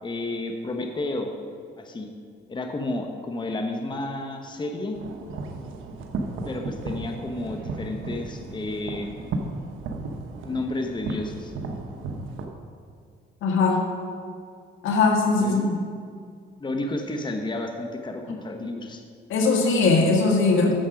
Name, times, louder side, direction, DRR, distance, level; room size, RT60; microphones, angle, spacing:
voice 1, 0.0-1.3 1.8-2.1 2.5-5.0 6.4-9.1 10.4-11.5 15.4-15.7 16.6-19.0, left 2 dB, 25° left, 4 dB, 1.0 m, -31 dB
sound 1, 4.9-12.5, right 3 dB, 85° right, 1.0 m, -34 dB
voice 2, 13.4-13.9 14.8-15.8 19.3-20.7, left 3 dB, 80° left, 1 dB, 1.8 m, -20 dB
10.5 x 7.2 x 5.1 m, 2.2 s
cardioid pair, 90°, 20 cm